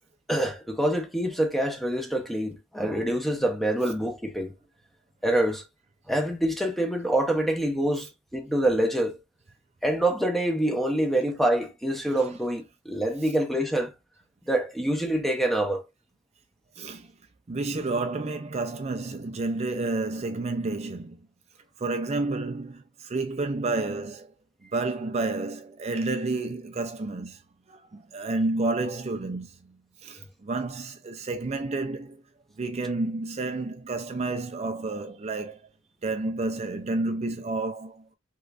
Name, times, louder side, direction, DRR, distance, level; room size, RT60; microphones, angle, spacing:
voice 1, 0.3-4.5 5.2-5.6 6.1-9.2 9.8-13.9 14.5-15.8, right 1 dB, ahead, 0.8 m, -26 dB
voice 2, 16.8-17.1 17.5-21.2 21.8-24.3 24.7-27.4 27.7-29.8 30.0-32.2 32.6-35.6 36.0-38.0, right 2 dB, 35° right, 0.5 m, -30 dB
5.0 x 3.8 x 2.5 m
head